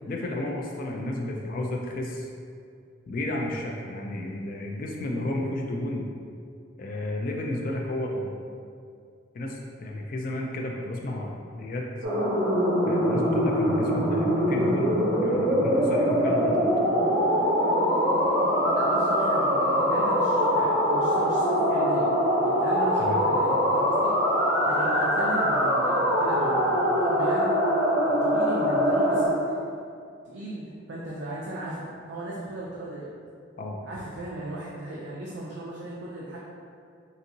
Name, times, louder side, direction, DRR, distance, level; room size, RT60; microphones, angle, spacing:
voice 1, 0.1-2.3 3.1-6.1 6.8-8.4 9.3-11.9 12.8-16.7 23.0-23.2 33.6-33.8, left 1 dB, 45° left, 0 dB, 0.3 m, -32 dB
sound 1, 12.0-29.3, equal, 85° right, 0.8 m, -23 dB
voice 2, 18.7-24.1 24.7-27.5 28.2-29.6 30.2-33.1 33.8-36.4, right 1 dB, 65° right, -5 dB, 0.4 m, -36 dB
3.9 x 2.6 x 2.7 m, 2.3 s
head